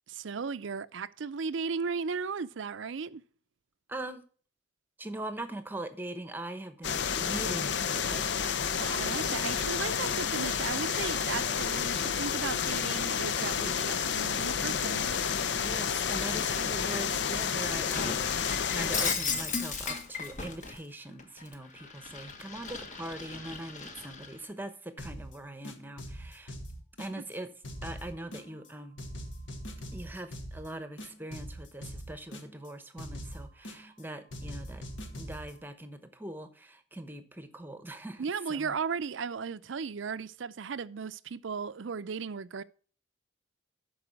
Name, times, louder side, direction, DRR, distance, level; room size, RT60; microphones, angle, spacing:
voice 1, 0.1-3.2 8.8-15.1 38.2-42.6, right 5 dB, 80° right, 0.5 m, -36 dB
voice 2, 3.9-4.2 5.0-8.3 15.6-26.5 27.0-27.5 27.8-29.0 29.9-34.9 35.2-38.7, right 1 dB, 10° right, 0.9 m, -42 dB
sound 1, 6.8-19.1, left 7 dB, 65° left, 0.6 m, -30 dB
Shatter, 17.9-20.8 21.2-24.3, left 5 dB, 40° left, 1.4 m, -36 dB
sound 2, 25.0-25.3 25.6-27.4 27.6-28.7 29.0-30.7 31.0-32.7 33.0-34.0 34.3-35.5, equal, 80° left, 2.0 m, -42 dB
12.0 x 4.8 x 5.9 m
head